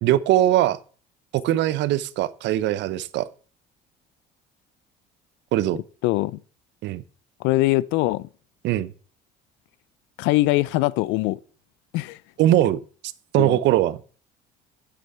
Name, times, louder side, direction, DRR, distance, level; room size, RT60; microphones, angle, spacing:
voice 1, 0.0-0.8 1.3-3.3 5.5-5.8 6.8-7.0 8.6-8.9 12.4-12.8 13.3-14.0, right 13 dB, 70° right, 0.9 m, -21 dB
voice 2, 6.0-6.4 7.4-8.3 10.2-11.4 11.9-12.2 13.4-13.6, left 19 dB, 80° left, 0.6 m, -22 dB
8.7 x 6.2 x 7.9 m
supercardioid pair, 90°, 19 cm